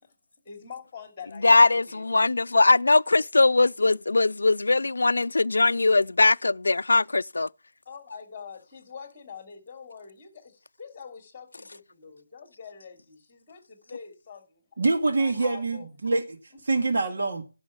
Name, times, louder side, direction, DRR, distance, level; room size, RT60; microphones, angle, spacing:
voice 1, 0.4-2.0 7.8-14.8 15.2-15.9, left 6 dB, 15° left, 3.1 m, -44 dB
voice 2, 1.4-7.5, left 3 dB, 75° left, 0.4 m, -21 dB
voice 3, 14.8-16.4 16.7-17.4, right 3 dB, 55° right, 2.1 m, -25 dB
10.5 x 5.7 x 7.2 m
figure-of-eight pair, 170°, 0 cm